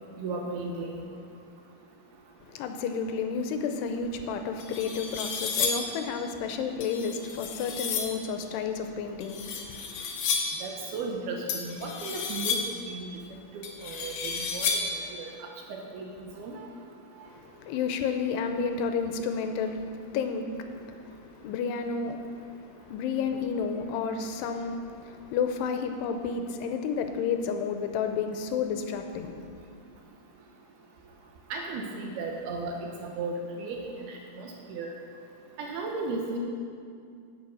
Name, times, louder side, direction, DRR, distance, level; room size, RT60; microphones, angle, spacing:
voice 1, 0.2-1.1 10.6-12.6 12.9-13.2 13.5-14.7 15.1-15.3 15.7-16.1 16.4-16.5 31.5-34.9 35.6-36.4, right 3 dB, 75° right, 1 dB, 2.7 m, -35 dB
voice 2, 2.5-10.0 17.3-29.4, left 6 dB, 90° left, 6 dB, 2.7 m, -31 dB
sound 1, 4.1-4.2 4.6-6.0 6.8-8.2 9.2-10.7 11.5-12.9 13.6-15.0, left 5 dB, 70° left, 2.0 m, -32 dB
9.8 x 9.2 x 6.3 m, 2.4 s
omnidirectional pair, 4.8 m